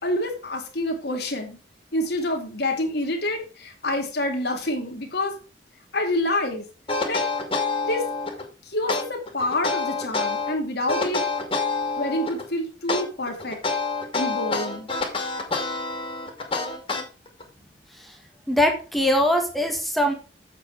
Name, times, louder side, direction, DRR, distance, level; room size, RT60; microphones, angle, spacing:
voice 1, 0.0-1.6 1.9-5.3 5.9-6.6 7.1-7.3 7.8-8.1 8.6-11.3 12.0-13.6 14.1-14.9, left 1 dB, 65° left, 3 dB, 2.3 m, -27 dB
sound 1, 6.9-8.4 8.9-10.5 10.9-12.4 12.9-17.4, left 3 dB, 30° left, 2.5 m, -27 dB
voice 2, 18.5-20.1, left 1 dB, ahead, 3 dB, 1.6 m, -21 dB
7.8 x 7.6 x 4.7 m, 0.35 s
head